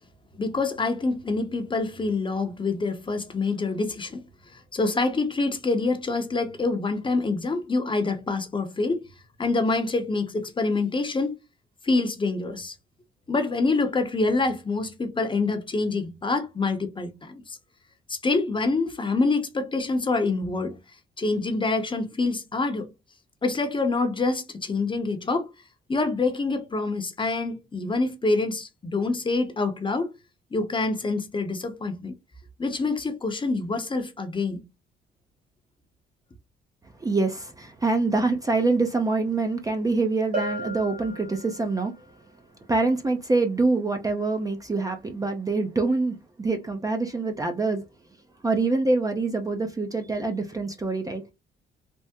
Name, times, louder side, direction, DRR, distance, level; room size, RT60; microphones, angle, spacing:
voice 1, 0.3-4.2 4.5-9.0 9.4-11.3 11.8-12.7 13.3-17.6 18.1-20.8 21.2-22.9 23.4-25.5 25.9-30.1 30.5-32.2 32.6-34.6, left 3 dB, 25° left, 0.7 m, -26 dB
voice 2, 37.0-42.0 42.7-47.8 48.4-51.2, right 3 dB, 15° right, 0.5 m, -25 dB
Bell, 40.3-41.9, right 1 dB, 45° right, 1.5 m, -34 dB
3.4 x 2.0 x 2.8 m
cardioid pair, 90°, 20 cm